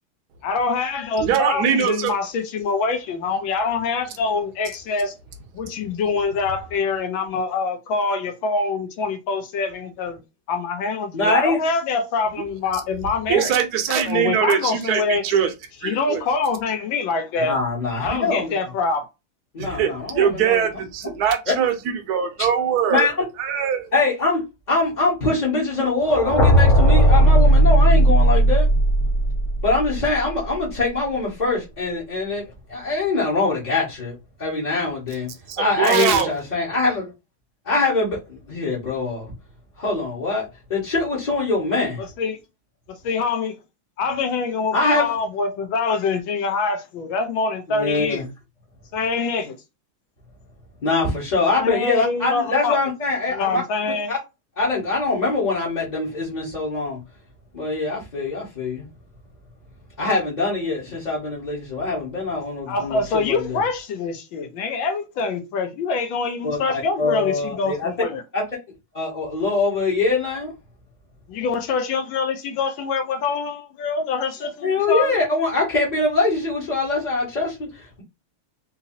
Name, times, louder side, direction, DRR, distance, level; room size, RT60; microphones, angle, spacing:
voice 1, 0.4-5.1 5.5-10.2 10.5-13.5 14.1-15.2 15.8-17.5 18.0-19.1 42.0-42.4 42.9-43.5 44.0-48.2 48.9-49.6 51.5-52.8 53.3-54.1 62.7-68.2 71.3-75.1, left 4 dB, 70° left, 1.4 m, -25 dB
voice 2, 1.2-2.1 13.3-15.5 15.8-16.2 19.6-23.1 23.4-23.8 35.5-36.3, right 8 dB, 60° right, 1.2 m, -22 dB
voice 3, 11.1-11.6 17.4-18.5 19.5-20.7 21.0-21.1 21.5-21.6 22.9-23.2 23.9-24.4 24.7-28.7 29.6-32.4 32.7-34.1 34.4-35.3 35.6-37.1 37.7-39.3 39.8-40.4 40.7-42.0 44.7-45.1 47.7-48.3 50.8-53.6 54.1-54.2 54.6-57.0 57.5-58.8 60.0-63.6 66.4-67.9 68.3-68.4 68.9-70.5 74.6-78.0, left 3 dB, 30° left, 0.9 m, -23 dB
sound 1, 26.0-30.0, right 1 dB, 50° left, 1.1 m, -15 dB
3.9 x 2.7 x 2.7 m
omnidirectional pair, 2.3 m